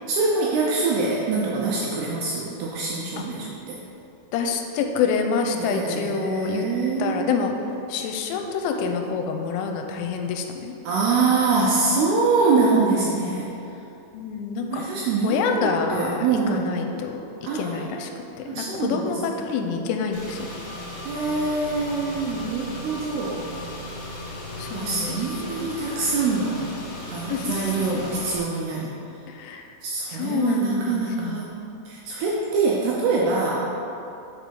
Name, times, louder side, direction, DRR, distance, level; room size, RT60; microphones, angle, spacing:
voice 1, 0.1-3.8 5.5-7.6 10.8-13.5 14.7-16.8 17.4-18.1 18.5-19.4 21.0-23.5 24.7-26.6 27.1-28.9 29.8-31.5 31.9-33.7, right 4 dB, 80° right, -4 dB, 2.4 m, -24 dB
voice 2, 4.3-6.6 7.0-7.6 7.9-10.7 14.1-14.9 15.2-16.2 16.5-18.1 18.5-20.4 24.6-25.7 27.3-27.6 29.3-29.7 30.1-31.5, left 5 dB, 90° left, 4 dB, 3.1 m, -27 dB
Car / Engine, 20.1-28.4, left 1 dB, 65° left, 2.0 m, -36 dB
7.6 x 4.9 x 5.3 m, 2.9 s
omnidirectional pair, 5.4 m